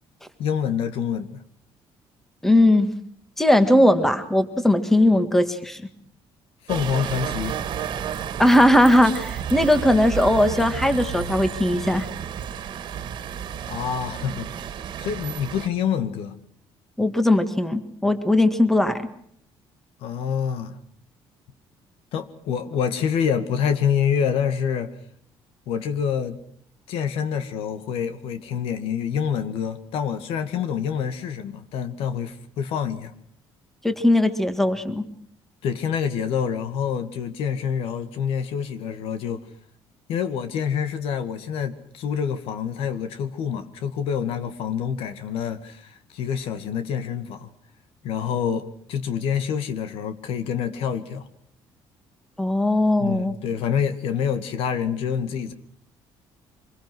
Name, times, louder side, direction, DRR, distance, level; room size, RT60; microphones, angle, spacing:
voice 1, 0.4-1.4 6.6-7.6 13.7-14.5 15.0-16.4 20.0-20.8 22.1-24.9 25.7-26.4 26.9-33.1 35.6-39.4 40.1-47.5 48.0-51.3 53.0-55.5, left 7 dB, 80° left, 2.2 m, -27 dB
voice 2, 2.4-2.9 3.4-5.8 8.4-12.1 17.0-19.0 33.8-35.0 52.4-53.4, left 1 dB, 5° left, 1.8 m, -19 dB
sound 1, 6.7-15.7, right 8 dB, 50° right, 2.1 m, -32 dB
25.5 x 22.0 x 6.3 m
cardioid pair, 160°, 10 cm